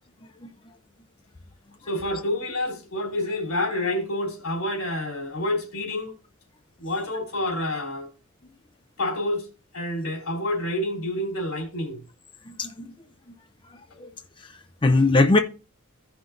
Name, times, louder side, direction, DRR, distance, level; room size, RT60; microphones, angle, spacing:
voice 1, 1.9-6.1 6.8-8.1 9.0-9.5 9.7-12.0, left 1 dB, 80° left, 3.5 m, -28 dB
voice 2, 12.5-12.9 13.7-14.1 14.4-15.4, left 2 dB, 25° left, 0.5 m, -22 dB
15.5 x 5.7 x 2.6 m
head